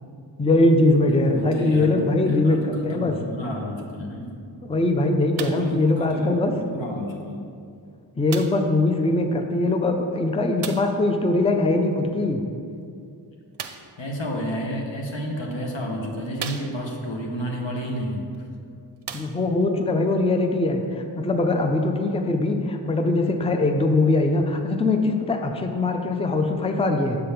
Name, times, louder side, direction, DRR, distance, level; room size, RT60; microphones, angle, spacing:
voice 1, 0.4-3.2 4.6-6.5 8.2-12.4 19.1-20.8 21.2-27.2, left 2 dB, 15° left, 5 dB, 0.4 m, -21 dB
voice 2, 1.1-4.4 5.5-6.2 6.5-7.4 14.0-18.3, equal, 85° left, 0 dB, 1.0 m, -31 dB
sound 1, 5.4-5.8 6.7-6.8 8.3-8.7 10.6-11.0 13.5-14.0 15.0-15.1 15.7-15.8 16.4-17.1 18.3-18.4 19.0-19.7 20.5-20.6, right 7 dB, 65° right, 0.5 m, -36 dB
6.8 x 3.4 x 5.7 m, 2.4 s
wide cardioid pair, 60°, 44 cm